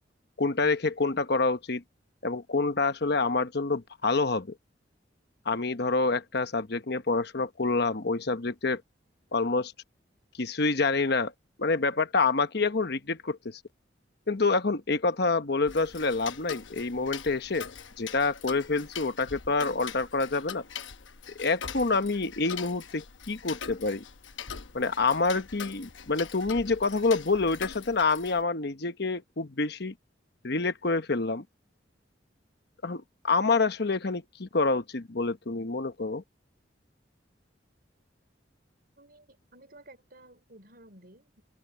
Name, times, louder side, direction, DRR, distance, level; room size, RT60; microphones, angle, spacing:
voice 1, 0.4-1.8 2.2-4.5 5.4-8.8 9.3-9.7 10.4-11.3 11.6-13.6 14.3-17.7 18.0-20.6 21.4-24.0 24.7-29.9 30.4-31.4 32.8-36.2, left 3 dB, 60° left, 1.1 m, -27 dB
Tick-tock, 15.7-28.4, left 7 dB, 90° left, 1.0 m, -43 dB
voice 2, 39.0-41.4, right 1 dB, 55° right, 4.6 m, -54 dB
head